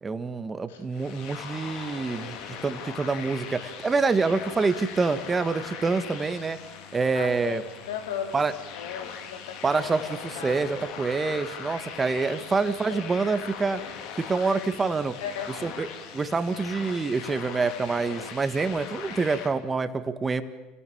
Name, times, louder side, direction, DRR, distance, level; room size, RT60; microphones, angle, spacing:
voice 1, 0.0-6.6 6.9-7.6 8.3-8.5 9.6-13.8 14.2-15.1 15.6-15.9 16.1-20.4, right 4 dB, 20° right, 11 dB, 1.8 m, -26 dB
sound 1, 0.9-19.5, left 7 dB, 65° left, 2.8 m, -40 dB
voice 2, 7.1-8.4 8.7-9.9 10.3-10.7 12.1-12.4 12.8-13.2 15.2-15.9, left 8 dB, 85° left, 6 dB, 2.9 m, -37 dB
28.0 x 18.0 x 7.3 m, 1.1 s
supercardioid pair, 95°, 0 cm